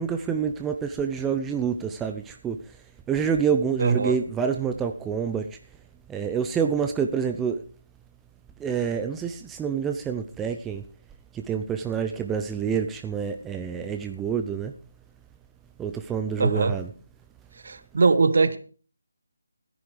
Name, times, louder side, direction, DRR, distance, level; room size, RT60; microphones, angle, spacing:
voice 1, 0.0-2.6 3.1-5.5 6.1-7.6 8.6-10.8 11.3-14.7 15.8-16.9, right 7 dB, 10° right, 0.6 m, -27 dB
voice 2, 3.8-4.2 16.4-16.7 17.6-18.6, right 4 dB, 55° right, 1.4 m, -21 dB
14.0 x 10.0 x 4.9 m
figure-of-eight pair, 155°, 0 cm